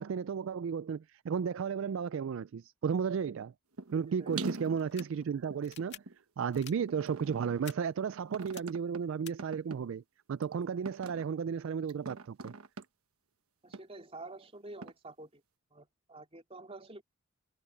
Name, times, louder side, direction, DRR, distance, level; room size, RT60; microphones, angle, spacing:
voice 1, 0.0-3.5 3.9-6.0 6.4-10.0 10.3-12.5, right 6 dB, 60° right, 0.3 m, -34 dB
sound 1, 3.8-3.9 4.3-6.2 6.9-7.7 8.3-9.0 9.4-9.8 10.4-10.5 10.8-11.2 11.9-12.8 13.7-13.8 14.8-14.9, right 3 dB, 80° right, 1.2 m, -42 dB
sound 2, 4.8-5.1 5.6-6.0 6.5-6.7 7.6-7.7 8.4-8.6 9.3-9.4, left 11 dB, 50° left, 2.4 m, -47 dB
voice 2, 13.6-15.4 15.7-17.0, right 2 dB, 25° right, 3.5 m, -48 dB
head